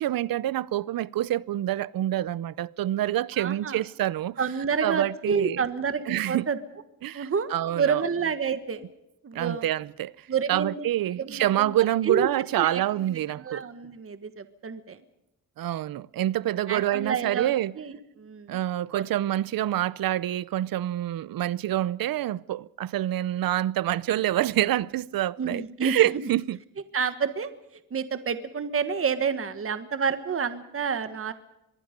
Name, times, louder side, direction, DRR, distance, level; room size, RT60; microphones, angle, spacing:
voice 1, 0.0-4.4 4.8-5.6 6.1-6.5 7.0-8.0 9.3-10.1 10.5-13.6 15.6-17.8 18.5-26.6, right 13 dB, 90° right, 0.7 m, -27 dB
voice 2, 3.4-3.8 4.4-6.6 7.1-8.9 9.2-9.6 10.3-10.8 11.2-11.8 12.0-12.3 12.6-12.8 13.4-15.0 16.7-18.6 18.9-19.0 25.4-25.9 26.9-27.5 27.9-31.3, right 6 dB, 40° right, 1.4 m, -29 dB
24.5 x 22.5 x 5.2 m
wide cardioid pair, 140°, 34 cm